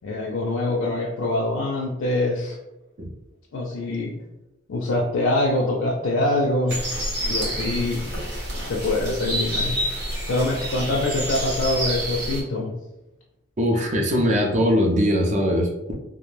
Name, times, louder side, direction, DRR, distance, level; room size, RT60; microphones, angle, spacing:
voice 1, 0.0-2.6 3.5-4.1 4.7-6.8 7.2-8.0 8.6-9.7 10.3-12.7, left 2 dB, 90° left, -2 dB, 0.4 m, -24 dB
sound 1, 6.7-12.4, right 1 dB, 55° right, 0.8 m, -28 dB
voice 2, 13.6-15.9, equal, 35° right, 1 dB, 0.4 m, -21 dB
2.2 x 2.1 x 3.0 m, 0.95 s
head